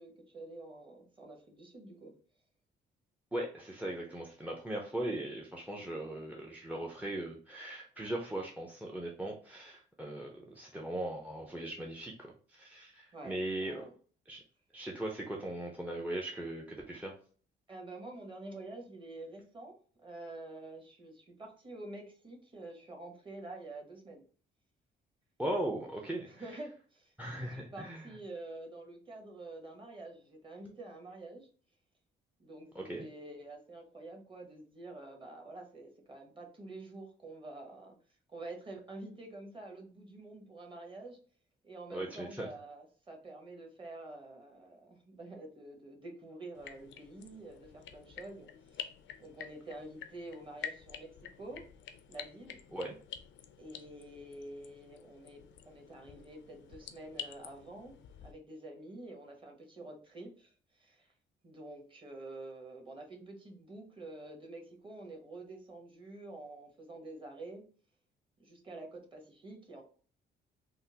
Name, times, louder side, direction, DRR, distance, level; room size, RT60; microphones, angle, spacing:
voice 1, 0.0-2.1 13.1-13.9 17.7-24.2 26.2-27.1 27.5-31.5 32.4-37.9 38.3-41.2 41.6-48.9 49.2-51.6 52.1-52.6 53.6-61.1 61.4-67.6 68.4-69.8, right 2 dB, 25° right, 1 dB, 1.0 m, -48 dB
voice 2, 3.3-13.8 14.3-14.4 14.7-17.1 25.4-26.3 27.2-28.1 32.7-33.1 41.9-42.5 52.7-53.0, right 1 dB, 5° right, 1 dB, 0.5 m, -39 dB
sound 1, 46.5-58.3, left 8 dB, 70° left, 0.4 m, -49 dB
3.6 x 2.0 x 2.7 m, 0.43 s
cardioid pair, 90°, 20 cm